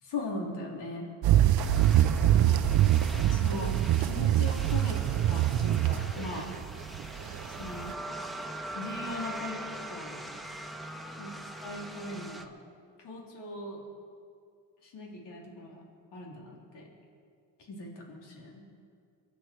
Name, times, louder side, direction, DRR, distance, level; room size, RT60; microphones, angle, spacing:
voice 1, 0.0-1.1 2.4-2.7 3.2-5.0 5.3-6.5 7.6-7.9 8.7-10.3 11.2-11.3 11.6-12.5 13.0-13.8 14.8-16.9 17.7-18.7, left 2 dB, 70° left, -2 dB, 3.9 m, -39 dB
sound 1, 1.2-7.9, right 12 dB, 55° right, 0.7 m, -24 dB
sound 2, 1.6-12.5, right 1 dB, ahead, 1.5 m, -42 dB
24.5 x 9.9 x 4.8 m, 2.3 s
supercardioid pair, 60°, 43 cm